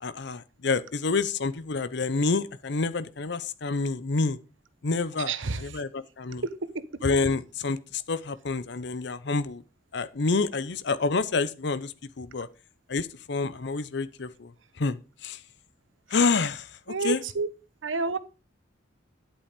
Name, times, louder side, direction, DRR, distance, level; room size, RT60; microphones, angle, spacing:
voice 1, 0.0-4.4 4.8-5.3 5.6-6.4 7.0-9.6 9.9-12.5 12.9-14.5 14.8-15.4 16.1-17.2, left 4 dB, 60° left, 0.7 m, -28 dB
voice 2, 5.2-5.8 6.4-6.8 16.9-17.5 17.8-18.2, right 4 dB, 75° right, 1.0 m, -30 dB
10.0 x 8.6 x 5.1 m
head